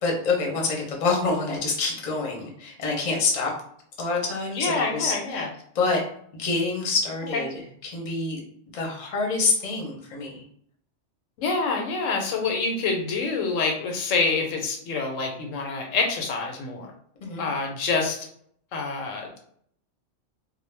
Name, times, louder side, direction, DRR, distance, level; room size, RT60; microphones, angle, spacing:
voice 1, 0.0-3.5 4.0-5.5 5.7-6.0 6.4-8.4 8.7-10.4 17.2-17.5, left 3 dB, 40° left, -1 dB, 0.6 m, -26 dB
voice 2, 4.5-5.5 7.3-7.4 11.4-16.9 17.4-18.3 18.7-19.4, left 4 dB, 90° left, 2 dB, 1.0 m, -26 dB
2.3 x 2.0 x 3.1 m, 0.65 s
omnidirectional pair, 1.3 m